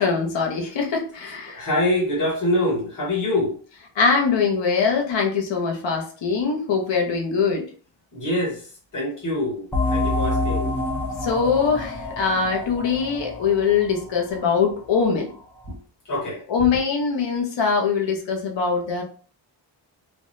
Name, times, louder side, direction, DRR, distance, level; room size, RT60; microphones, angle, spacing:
voice 1, 0.0-1.6 4.0-7.7 11.2-15.3 16.5-19.0, left 5 dB, 65° left, 1 dB, 0.8 m, -22 dB
voice 2, 1.5-3.5 8.1-8.6 8.9-10.7 15.7-15.8 16.1-16.4, left 1 dB, 40° left, -4 dB, 1.2 m, -24 dB
sound 1, 9.7-15.0, left 2 dB, 5° left, 0.4 m, -27 dB
3.4 x 2.2 x 2.6 m, 0.41 s
wide cardioid pair, 170°, 47 cm